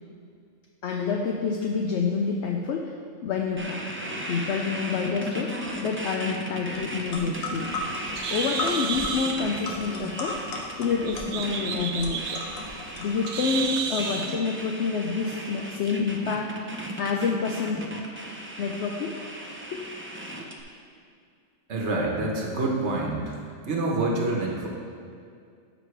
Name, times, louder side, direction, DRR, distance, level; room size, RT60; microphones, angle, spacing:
voice 1, 0.8-2.9 3.2-3.8 4.3-5.5 5.8-7.7 8.3-10.4 10.8-12.4 13.0-16.5 17.0-17.9 18.6-19.2 19.7-19.8, left 5 dB, 65° left, 2 dB, 0.8 m, -28 dB
sound 1, 3.6-20.6, right 1 dB, 20° right, 0.3 m, -36 dB
sound 2, 6.7-6.8 7.1-13.6, left 3 dB, 80° left, 1.4 m, -35 dB
Bird, 7.1-14.4, right 6 dB, 85° right, 1.1 m, -33 dB
voice 2, 21.7-23.4 23.6-24.7, right 2 dB, 55° right, -1 dB, 1.4 m, -27 dB
13.0 x 5.2 x 3.3 m, 2.3 s
omnidirectional pair, 1.4 m